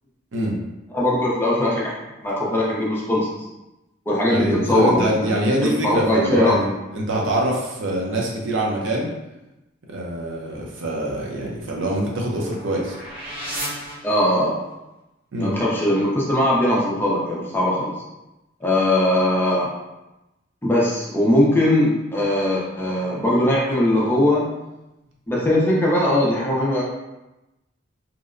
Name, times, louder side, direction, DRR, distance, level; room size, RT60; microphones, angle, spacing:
voice 1, 0.9-1.9 2.2-3.5 4.1-5.3 5.6-6.6 14.0-14.5 15.4-17.9 18.6-19.7 20.6-24.5 25.3-26.8, left 1 dB, 10° left, -5 dB, 0.5 m, -20 dB
voice 2, 4.3-6.7 6.9-9.1 9.9-13.0 15.3-15.6, right 1 dB, 75° right, -2 dB, 0.6 m, -24 dB
sound 1, 11.3-14.7, right 1 dB, 30° right, 0.8 m, -35 dB
2.8 x 2.1 x 2.4 m, 0.99 s
head